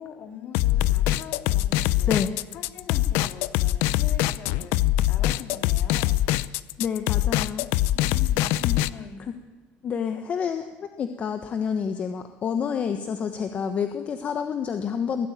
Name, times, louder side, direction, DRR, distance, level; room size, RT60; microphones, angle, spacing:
voice 1, 0.0-2.1 2.5-6.2 7.9-9.3, left 7 dB, 55° left, 5 dB, 3.0 m, -43 dB
sound 1, 0.5-8.9, left 14 dB, 80° left, 0.6 m, -23 dB
voice 2, 2.1-2.4 6.8-7.7 8.6-8.8 9.2-9.3 9.8-15.3, left 7 dB, 35° left, 7 dB, 1.3 m, -28 dB
22.0 x 14.5 x 9.1 m, 1.2 s
cardioid pair, 140°, 4 cm